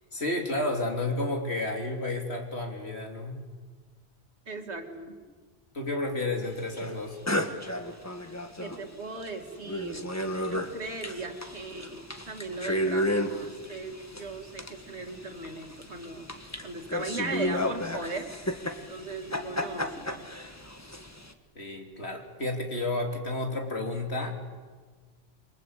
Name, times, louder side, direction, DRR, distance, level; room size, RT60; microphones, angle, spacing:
voice 1, 0.1-3.4 5.7-7.2 21.6-24.3, left 2 dB, 70° left, 2 dB, 3.7 m, -31 dB
voice 2, 4.5-5.1 8.6-10.1 10.4-18.3 18.9-20.3, right 3 dB, 85° right, 4 dB, 2.7 m, -38 dB
sound 1, 6.7-7.0 7.3-8.9 9.2-9.3 9.6-21.3, left 1 dB, 15° left, 1.5 m, -33 dB
28.0 x 23.0 x 8.3 m, 1.5 s
omnidirectional pair, 1.1 m